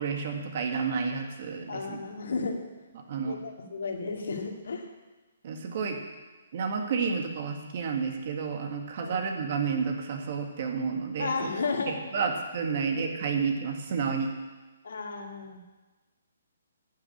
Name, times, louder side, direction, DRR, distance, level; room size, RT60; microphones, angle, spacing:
voice 1, 0.0-2.0 3.1-3.4 5.4-6.0 6.5-11.3 11.9-14.3, right 5 dB, 45° right, 4 dB, 1.9 m, -30 dB
voice 2, 1.7-2.6 3.2-4.9 9.0-9.2 11.2-12.2 12.8-13.0 14.8-15.6, left 4 dB, 70° left, 3 dB, 2.3 m, -33 dB
11.5 x 7.7 x 8.7 m, 1.2 s
hypercardioid pair, 160°, 0 cm